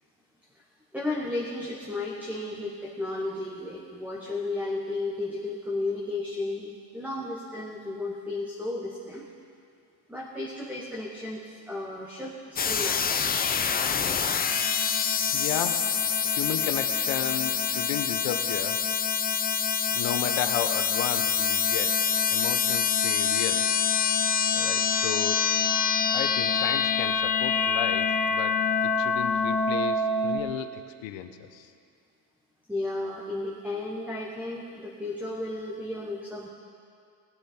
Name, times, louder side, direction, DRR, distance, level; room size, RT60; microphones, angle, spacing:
voice 1, 0.9-9.3 10.1-13.2 32.7-36.5, left 2 dB, 5° right, -3 dB, 1.2 m, -33 dB
sound 1, 12.6-30.4, left 6 dB, 20° left, 0.5 m, -26 dB
voice 2, 15.3-15.9 16.2-18.8 19.9-22.0 22.3-23.7 24.5-25.7 26.1-28.6 28.8-31.7, left 11 dB, 70° left, 9 dB, 1.0 m, -34 dB
19.0 x 8.3 x 4.5 m, 2.4 s
cardioid pair, 115°, 47 cm